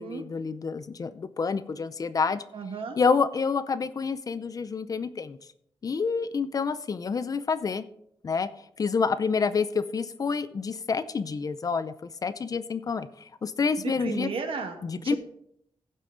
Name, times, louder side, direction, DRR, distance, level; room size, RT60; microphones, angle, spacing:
voice 1, 0.0-2.4 3.0-5.4 5.8-7.8 8.2-8.5 8.8-11.9 12.2-14.3 14.8-15.2, left 5 dB, 40° left, 14 dB, 0.5 m, -28 dB
voice 2, 2.5-3.0 13.8-15.2, right 5 dB, 70° right, 5 dB, 1.5 m, -34 dB
16.0 x 5.6 x 3.9 m, 0.72 s
wide cardioid pair, 150°, 10 cm